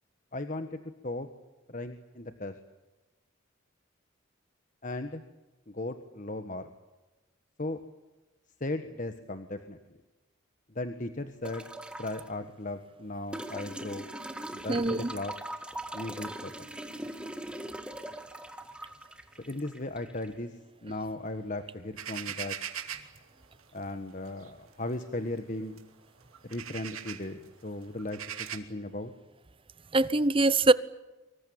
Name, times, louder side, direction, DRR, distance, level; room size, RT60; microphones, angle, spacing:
voice 1, 0.3-1.3 1.7-2.5 4.8-5.2 5.7-6.7 7.6-7.8 8.6-9.8 10.7-11.7 12.0-14.1 14.5-15.3 15.9-16.7 19.4-20.6 20.8-22.6 23.7-25.8 26.4-28.2 28.5-29.1, left 2 dB, 40° left, 1.5 m, -37 dB
sound 1, 11.4-12.3 13.3-20.3 21.7-21.8, right 1 dB, 5° right, 1.8 m, -41 dB
voice 2, 14.7-15.1 29.9-30.7, right 2 dB, 25° right, 0.8 m, -23 dB
sound 2, 22.0-23.2 24.3-24.5 24.9-25.0 25.8-25.9 26.3-27.3 28.0-28.6, right 9 dB, 85° right, 2.7 m, -39 dB
25.0 x 24.0 x 8.8 m
head